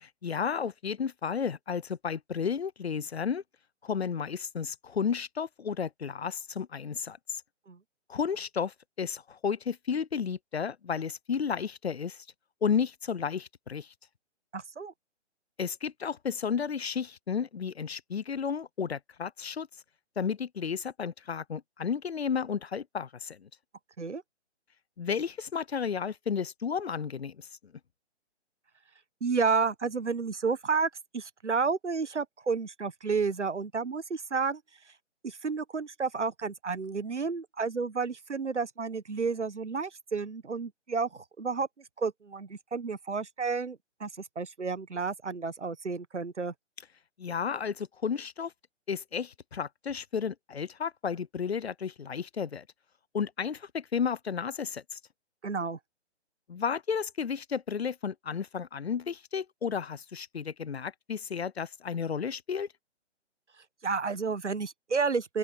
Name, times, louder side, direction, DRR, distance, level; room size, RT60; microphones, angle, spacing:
voice 1, 0.0-3.4 3.8-7.4 8.1-12.2 12.6-13.9 15.6-19.7 20.2-23.5 25.0-27.5 47.2-48.5 48.9-52.6 53.1-55.0 56.5-62.7, left 6 dB, 60° left, 0.8 m, -32 dB
voice 2, 14.5-14.9 24.0-24.2 29.2-34.6 35.2-41.7 42.0-46.5 55.4-55.8 63.8-65.4, right 5 dB, 75° right, 1.3 m, -31 dB
open air
figure-of-eight pair, 135°, 35 cm